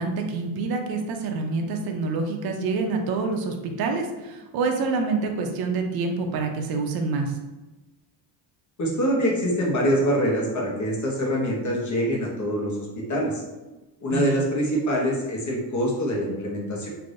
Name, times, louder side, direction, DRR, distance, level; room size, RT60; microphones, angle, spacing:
voice 1, 0.0-7.3 14.1-14.4, right 4 dB, 55° right, 4 dB, 0.5 m, -27 dB
voice 2, 8.8-13.4 14.0-16.9, equal, 40° left, -2 dB, 0.9 m, -25 dB
3.3 x 2.6 x 2.6 m, 1.1 s
cardioid pair, 130°, 46 cm